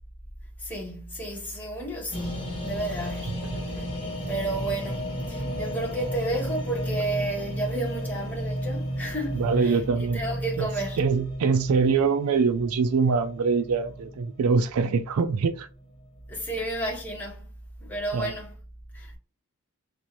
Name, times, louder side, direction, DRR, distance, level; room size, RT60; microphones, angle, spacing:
voice 1, 0.6-3.5 4.3-11.0 16.3-17.5 17.8-18.5 18.9-19.2, right 1 dB, 10° left, 1.3 m, -32 dB
sound 1, 2.1-15.1 15.5-15.6, equal, 25° left, 1.2 m, -33 dB
voice 2, 3.3-3.7 9.3-10.2 10.6-10.7 11.0-15.7 18.1-18.3, right 5 dB, 80° right, 0.4 m, -24 dB
4.3 x 2.6 x 2.9 m
head